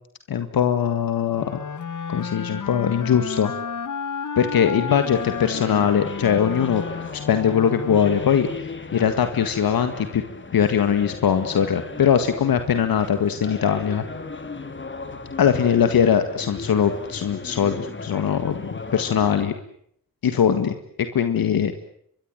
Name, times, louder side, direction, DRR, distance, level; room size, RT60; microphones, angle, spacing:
voice 1, 0.3-1.6 2.1-3.5 4.4-6.8 7.1-10.2 10.5-14.0 15.4-18.6 18.9-19.5 20.2-20.8 21.1-21.7, left 8 dB, 80° left, 9 dB, 1.9 m, -21 dB
sound 1, 1.4-8.8, left 6 dB, 60° left, 2.0 m, -32 dB
sound 2, 4.9-19.4, left 3 dB, 35° left, 3.0 m, -36 dB
24.5 x 23.0 x 9.1 m, 0.70 s
cardioid pair, 70°, 35 cm